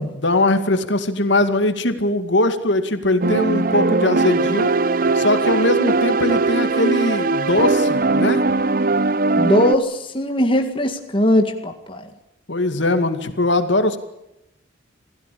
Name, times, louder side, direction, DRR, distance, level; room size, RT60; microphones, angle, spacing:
voice 1, 0.1-4.7 5.1-8.4 12.5-14.0, left 2 dB, 65° left, 8 dB, 2.2 m, -20 dB
sound 1, 3.2-9.7, right 3 dB, 45° right, 0.8 m, -19 dB
voice 2, 9.4-12.0, left 1 dB, 25° left, 5 dB, 2.0 m, -20 dB
28.0 x 16.5 x 8.6 m, 0.88 s
head